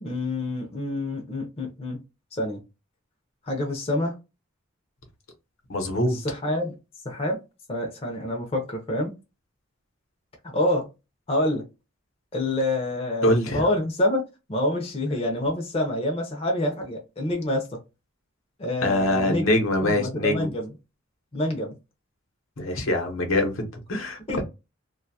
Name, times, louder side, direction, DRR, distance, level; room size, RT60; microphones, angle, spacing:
voice 1, 0.0-2.0 2.3-2.6 3.5-4.2 6.1-6.7 7.0-7.4 7.7-9.2 10.5-10.9 11.3-11.7 12.3-14.2 14.5-17.8 18.6-20.7 21.3-21.7 24.3-24.4, left 1 dB, 30° left, 0.5 m, -27 dB
voice 2, 5.7-6.2 13.2-13.6 18.8-20.5 22.6-24.4, left 1 dB, 75° left, 0.9 m, -24 dB
2.6 x 2.3 x 2.7 m
head